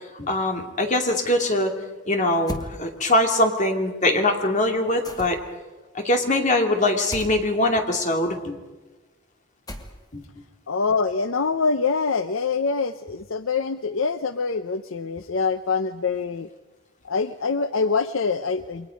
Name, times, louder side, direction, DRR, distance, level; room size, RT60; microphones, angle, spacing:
voice 1, 0.1-1.7 2.1-5.4 5.9-8.6 10.1-10.2, left 1 dB, 35° left, 3 dB, 2.7 m, -22 dB
sound 1, 2.5-2.7 5.0-5.6 7.1-7.4 9.7-10.2, left 1 dB, 20° left, 1.7 m, -35 dB
voice 2, 10.7-16.5 17.0-18.9, left 4 dB, 65° left, 11 dB, 0.7 m, -25 dB
29.0 x 23.0 x 5.2 m, 1.2 s
head